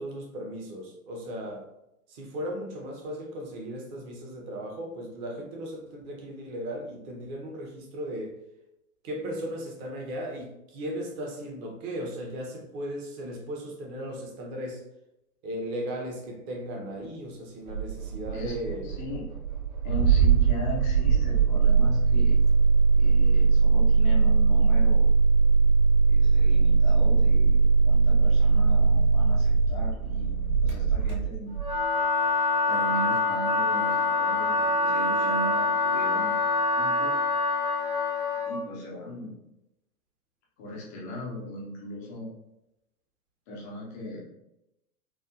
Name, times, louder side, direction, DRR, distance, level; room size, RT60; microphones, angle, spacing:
voice 1, 0.0-1.6 2.1-8.4 9.0-14.8 15.4-18.9, equal, 30° right, 0 dB, 0.8 m, -36 dB
Engine starting, 17.7-31.8, right 5 dB, 45° right, 1.3 m, -21 dB
voice 2, 18.3-19.3 19.8-22.4 23.0-25.1 26.1-31.5 32.7-36.4 36.8-37.2 38.5-39.4 40.6-42.3 43.5-44.3, left 1 dB, 15° left, -4 dB, 0.3 m, -37 dB
Wind instrument woodwind instrument, 31.6-38.6, left 2 dB, 85° right, 1.0 m, -25 dB
4.4 x 2.4 x 2.4 m, 0.87 s
figure-of-eight pair, 100°, 43 cm